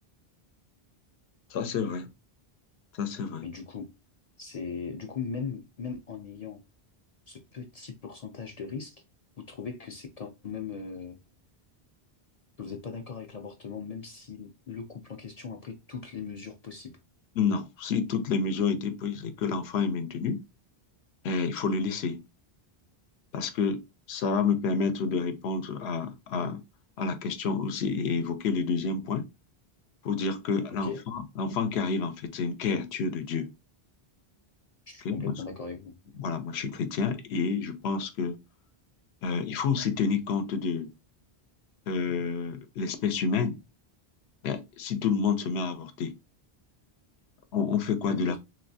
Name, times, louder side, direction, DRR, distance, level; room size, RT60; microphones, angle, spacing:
voice 1, 1.5-2.1 2.9-3.4 17.4-20.4 21.2-22.2 23.3-23.8 24.1-26.6 27.0-29.3 30.0-33.5 35.0-35.3 36.2-38.4 39.2-40.9 41.9-43.6 44.4-46.1 47.5-48.4, left 5 dB, 80° left, 0.8 m, -29 dB
voice 2, 3.4-3.9 4.4-6.6 7.3-9.0 9.4-11.2 12.6-17.0 30.8-31.0 34.9-35.9 48.1-48.4, left 5 dB, 50° left, 0.5 m, -39 dB
3.1 x 2.9 x 2.6 m
omnidirectional pair, 1.1 m